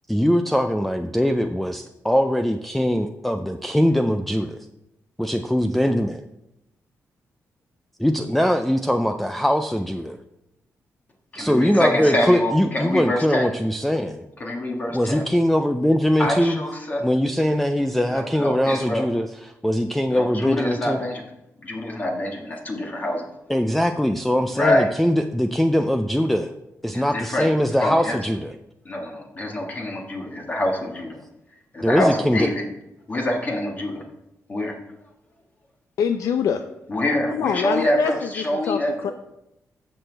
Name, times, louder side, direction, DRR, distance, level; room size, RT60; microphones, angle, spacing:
voice 1, 0.1-4.7 5.2-6.2 8.0-10.2 11.4-14.2 14.9-16.6 17.0-19.3 19.6-21.0 23.5-26.5 26.8-28.5 31.8-32.5, equal, ahead, 6 dB, 0.4 m, -21 dB
voice 2, 11.3-13.5 14.4-15.2 16.2-17.0 18.1-19.1 20.1-21.2 21.6-23.3 24.5-24.9 26.9-27.5 27.8-28.2 28.8-31.2 31.7-32.6 33.1-34.0 34.5-34.7 36.9-39.1, left 1 dB, 30° left, 1 dB, 1.5 m, -25 dB
voice 3, 36.0-36.6 37.3-38.1 38.7-39.1, left 7 dB, 80° left, 8 dB, 0.5 m, -24 dB
14.5 x 6.2 x 3.4 m, 0.87 s
wide cardioid pair, 150°, 6 cm